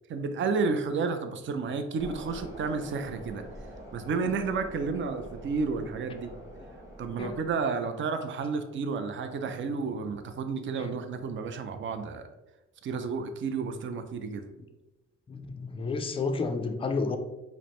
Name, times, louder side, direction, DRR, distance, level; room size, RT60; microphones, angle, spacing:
voice 1, 0.1-3.4 3.9-6.3 7.0-12.3 12.8-14.4, right 4 dB, 40° right, 8 dB, 0.4 m, -31 dB
sound 1, 2.0-7.6, right 1 dB, 10° right, 1.0 m, -45 dB
voice 2, 15.3-17.2, left 4 dB, 20° left, 6 dB, 0.4 m, -31 dB
4.9 x 2.1 x 3.0 m, 1.0 s
cardioid pair, 90°, 30 cm